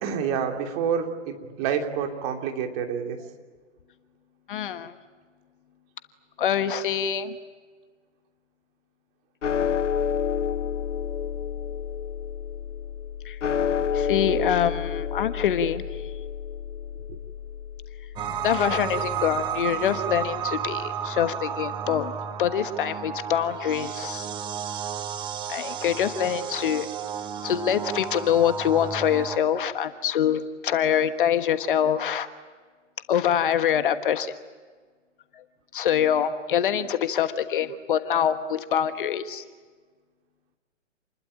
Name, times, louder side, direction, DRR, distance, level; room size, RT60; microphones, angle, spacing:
voice 1, 0.0-3.2 17.1-17.2, right 7 dB, 30° right, 3 dB, 2.9 m, -28 dB
voice 2, 4.5-4.9 6.4-7.4 13.2-13.4 13.9-15.8 18.4-22.1 22.4-24.3 25.5-26.9 27.4-32.3 33.1-34.3 35.7-39.4, left 9 dB, 45° left, 10 dB, 1.4 m, -25 dB
sound 1, 9.4-19.8, left 7 dB, 75° left, 0.9 m, -30 dB
sound 2, 18.2-29.4, right 8 dB, 10° right, 0.9 m, -32 dB
28.5 x 21.0 x 8.9 m, 1.5 s
figure-of-eight pair, 130°, 37 cm